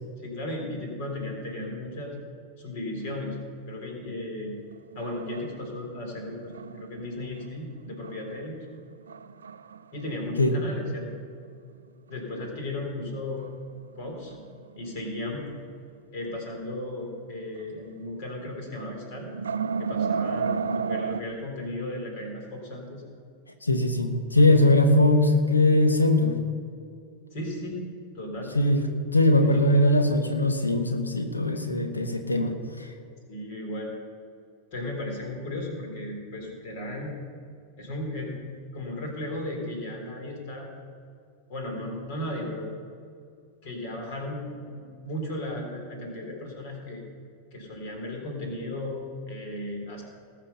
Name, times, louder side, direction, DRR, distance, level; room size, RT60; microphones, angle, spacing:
voice 1, 0.2-2.2 2.6-3.4 3.7-4.6 5.0-8.7 9.9-11.1 12.1-13.4 14.0-14.3 14.7-15.5 16.1-19.3 19.8-23.0 27.3-27.8 28.1-28.6 29.4-29.7 33.3-34.0 34.7-37.2 37.8-38.3 38.7-40.7 41.5-42.7 43.6-47.0 47.5-50.0, left 1 dB, 50° left, 1 dB, 3.6 m, -35 dB
sound 1, 4.4-7.5 8.0-8.6 9.1-10.1 10.5-10.6 11.1-11.2 13.4-13.5 14.0-15.3 15.6-15.7 17.5-17.9 18.2-18.4 18.8-21.2, right 6 dB, 70° right, 0.4 m, -33 dB
voice 2, 23.6-26.4 28.5-28.8 29.1-32.9, left 1 dB, 80° left, 6 dB, 1.1 m, -21 dB
19.5 x 6.8 x 5.7 m, 2.3 s
figure-of-eight pair, 90°, 0 cm